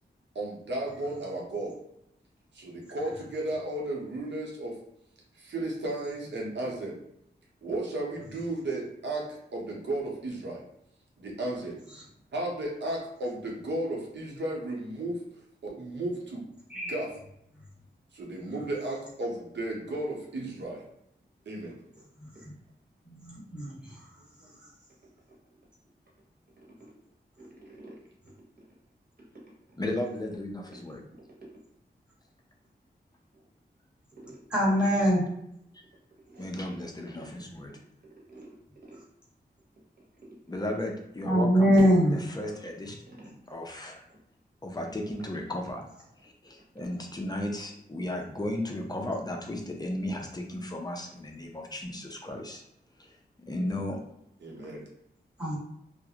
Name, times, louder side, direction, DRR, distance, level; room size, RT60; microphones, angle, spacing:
voice 1, 0.3-1.7 2.5-4.7 5.4-7.0 7.6-9.3 9.5-10.6 11.2-11.8 12.3-15.2 15.6-16.4 16.7-17.1 18.1-20.8 21.5-21.8 24.4-24.6 54.4-54.8, right 1 dB, 85° right, -2 dB, 0.7 m, -34 dB
voice 2, 23.2-24.1 34.5-35.2 41.2-42.1 55.4-55.6, equal, 5° right, -7 dB, 1.2 m, -23 dB
voice 3, 25.3-25.6 26.6-26.9 27.4-28.0 28.2-28.8 29.2-29.5 30.7-30.8 31.1-31.6 33.3-33.5 34.1-34.4 34.8-35.1 36.1-36.5 37.2-37.3 37.7-39.0 40.0-40.4 43.0-43.6 44.1-44.2 45.2-45.3 46.4-46.5, right 1 dB, 55° right, -4 dB, 1.0 m, -52 dB
voice 4, 29.8-31.0 35.7-35.8 36.4-37.7 40.5-43.0 43.5-44.0 44.6-45.9 46.2-52.6 53.0-53.1 53.4-54.0 54.6-54.7, left 1 dB, 20° left, 1 dB, 0.5 m, -35 dB
2.3 x 2.0 x 2.7 m, 0.77 s
wide cardioid pair, 70°, 18 cm